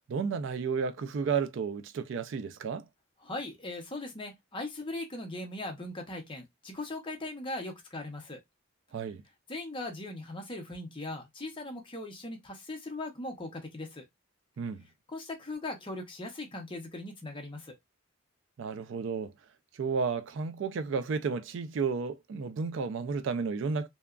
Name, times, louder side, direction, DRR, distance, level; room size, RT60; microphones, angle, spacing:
voice 1, 0.1-2.9 8.9-9.2 14.6-14.9 18.6-19.3 19.7-23.9, right 5 dB, 60° right, 0.3 m, -32 dB
voice 2, 3.2-8.4 9.5-14.0 15.1-17.8, left 2 dB, 25° left, 0.6 m, -39 dB
2.8 x 2.2 x 2.3 m
head